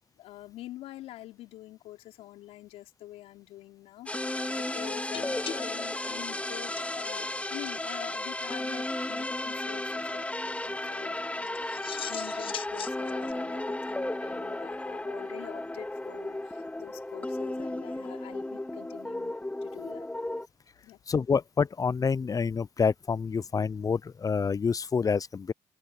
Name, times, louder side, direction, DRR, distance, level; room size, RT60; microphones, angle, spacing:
voice 1, 0.2-20.1 20.8-21.0, left 15 dB, 85° left, 4.7 m, -46 dB
sound 1, 4.1-20.5, left 1 dB, 15° left, 3.0 m, -34 dB
sound 2, 5.1-7.4 7.7-7.9 8.1-8.2 8.4-8.5 11.5-13.3, left 8 dB, 60° left, 1.2 m, -41 dB
voice 2, 21.1-25.5, left 5 dB, 35° left, 0.6 m, -27 dB
supercardioid pair, 60°, 10 cm